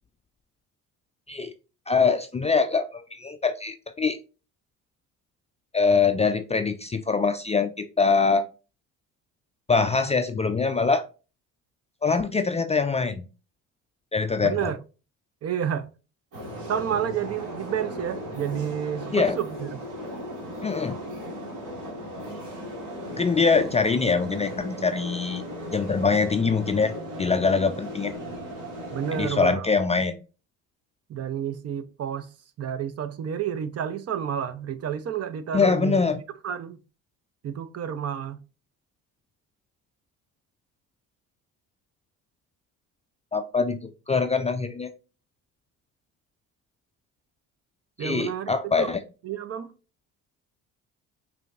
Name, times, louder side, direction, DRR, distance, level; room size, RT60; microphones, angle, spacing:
voice 1, 1.9-4.2 5.7-8.4 9.7-11.0 12.0-13.3 14.1-14.7 19.1-19.4 20.6-21.0 23.2-25.4 25.7-26.9 27.2-28.1 29.1-30.1 35.5-36.2 43.3-44.9 48.0-49.0, left 4 dB, 20° left, 0.3 m, -23 dB
voice 2, 14.4-14.8 15.4-15.9 16.7-19.8 28.9-29.7 31.1-32.3 32.6-36.0 36.4-36.8 37.4-38.4 48.0-48.9 49.2-49.7, right 9 dB, 45° right, 0.6 m, -30 dB
sound 1, 16.3-29.3, equal, 70° right, 1.8 m, -37 dB
5.0 x 2.7 x 2.4 m
supercardioid pair, 65°, 36 cm